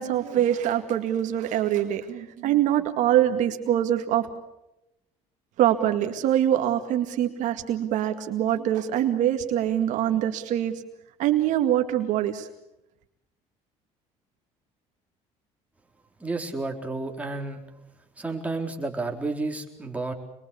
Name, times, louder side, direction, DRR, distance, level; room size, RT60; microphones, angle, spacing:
voice 1, 0.0-4.3 5.6-10.8 11.2-12.5, right 11 dB, 70° right, 6 dB, 2.1 m, -24 dB
voice 2, 16.2-17.6 18.2-20.1, right 3 dB, 10° right, 2 dB, 4.2 m, -31 dB
26.0 x 22.0 x 7.0 m, 0.87 s
cardioid pair, 100°, 13 cm